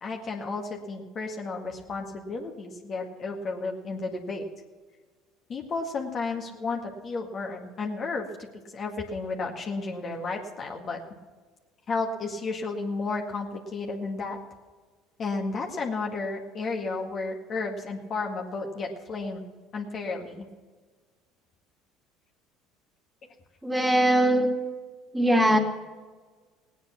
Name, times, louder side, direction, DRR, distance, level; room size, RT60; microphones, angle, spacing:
voice 1, 0.0-4.4 5.5-8.5 8.7-11.0 11.9-14.4 15.2-19.4 19.7-20.5 25.1-25.3, left 3 dB, 45° left, 1 dB, 1.9 m, -32 dB
voice 2, 23.6-24.5 25.1-25.6, right 1 dB, 10° right, 4 dB, 2.3 m, -21 dB
17.5 x 9.5 x 5.9 m, 1.4 s
hypercardioid pair, 70°, 0 cm